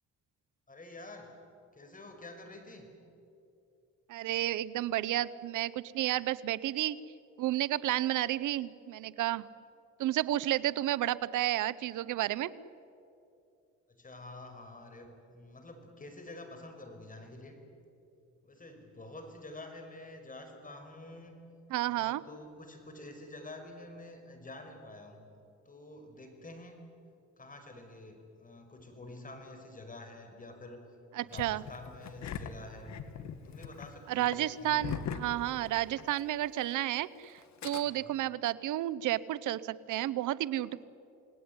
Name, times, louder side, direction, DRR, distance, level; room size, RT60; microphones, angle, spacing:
voice 1, 0.7-1.3 1.7-2.9 14.0-17.6 18.4-21.4 21.9-25.3 25.7-26.8 27.4-30.8 31.2-32.9 33.4-35.0 37.8-38.2, left 2 dB, 25° left, 5 dB, 5.6 m, -48 dB
voice 2, 4.1-7.0 7.4-9.5 10.0-12.5 21.7-22.2 31.1-31.6 34.1-40.9, right 14 dB, 80° right, 18 dB, 0.8 m, -31 dB
Engine starting, 31.3-36.2 36.4-36.5 37.4-37.8, left 7 dB, 65° left, 1.9 m, -41 dB
28.5 x 19.5 x 9.7 m, 2.7 s
cardioid pair, 90°, 30 cm